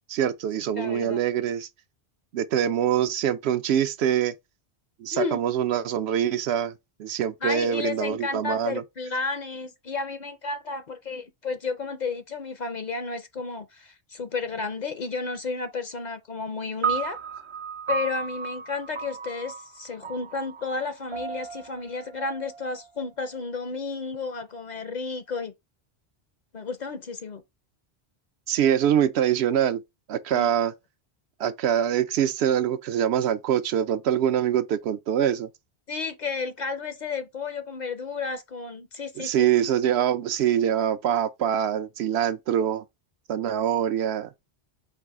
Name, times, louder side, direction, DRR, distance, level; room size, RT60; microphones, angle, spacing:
voice 1, 0.1-1.7 2.3-4.3 5.0-6.7 7.0-8.8 28.5-29.8 30.1-30.7 31.4-35.5 39.2-42.8 43.3-44.3, right 9 dB, 75° right, 0.8 m, -24 dB
voice 2, 0.7-1.2 5.1-5.4 7.4-17.2 17.9-25.5 26.5-27.4 30.3-30.5 35.9-39.5, left 4 dB, 50° left, 0.6 m, -32 dB
sound 1, 16.8-23.3, right 6 dB, 45° right, 0.4 m, -34 dB
4.7 x 2.4 x 4.7 m
omnidirectional pair, 1.1 m